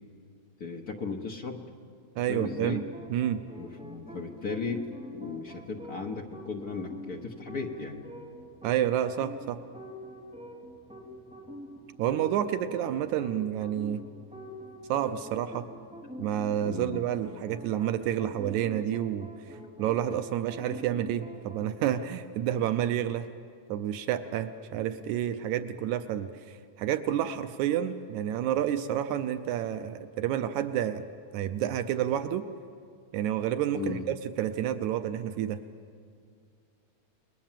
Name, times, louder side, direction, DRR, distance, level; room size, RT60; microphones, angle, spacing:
voice 1, 0.6-1.6 2.2-2.8 3.6-4.9 5.1-8.1 16.6-17.0 33.7-34.1, left 4 dB, 50° left, 2 dB, 1.1 m, -36 dB
voice 2, 2.2-2.8 3.1-3.4 8.6-9.6 12.0-14.0 14.9-15.7 16.2-19.3 19.8-23.3 23.7-31.1 31.3-32.5 33.1-35.6, right 10 dB, 80° right, 10 dB, 2.1 m, -29 dB
sound 1, 2.4-21.8, equal, ahead, 3.0 m, -45 dB
29.5 x 20.5 x 7.5 m, 2.2 s
omnidirectional pair, 3.3 m